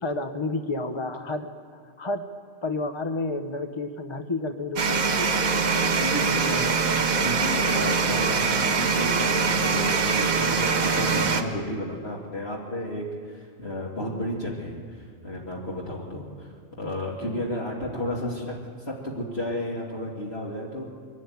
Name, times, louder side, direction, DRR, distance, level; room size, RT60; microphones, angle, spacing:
voice 1, 0.0-2.3 2.6-5.3, left 2 dB, 25° left, 8 dB, 0.7 m, -30 dB
sound 1, 4.8-11.4, right 5 dB, 85° right, 1.7 m, -23 dB
voice 2, 6.0-18.5 18.9-20.8, left 1 dB, 45° left, -3 dB, 2.5 m, -32 dB
22.5 x 13.0 x 9.2 m, 2.2 s
omnidirectional pair, 1.4 m